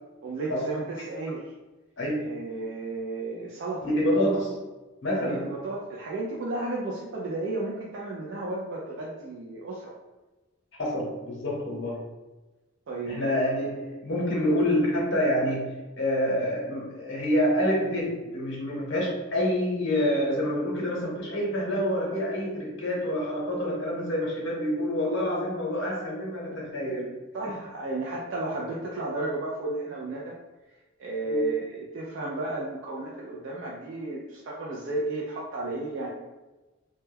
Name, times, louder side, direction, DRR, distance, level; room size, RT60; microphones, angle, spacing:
voice 1, 0.2-1.5 2.2-3.9 5.2-9.9 12.9-13.3 27.3-30.4 31.0-36.1, right 2 dB, 55° right, -3 dB, 0.3 m, -33 dB
voice 2, 2.0-2.3 3.8-4.6 5.0-5.5 10.8-12.0 13.1-27.2 31.3-31.5, equal, 55° left, -3 dB, 0.8 m, -27 dB
2.2 x 2.1 x 3.2 m, 1.1 s
head